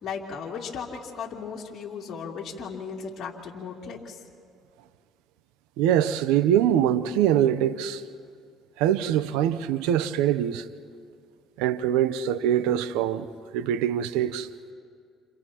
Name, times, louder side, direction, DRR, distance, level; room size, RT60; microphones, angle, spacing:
voice 1, 0.0-4.2, left 6 dB, 55° left, 2.7 m, -36 dB
voice 2, 5.8-8.0 8.8-10.7 11.6-13.3 13.5-14.5, right 10 dB, 85° right, 0.7 m, -23 dB
30.0 x 29.0 x 3.0 m
supercardioid pair, 80°, 0 cm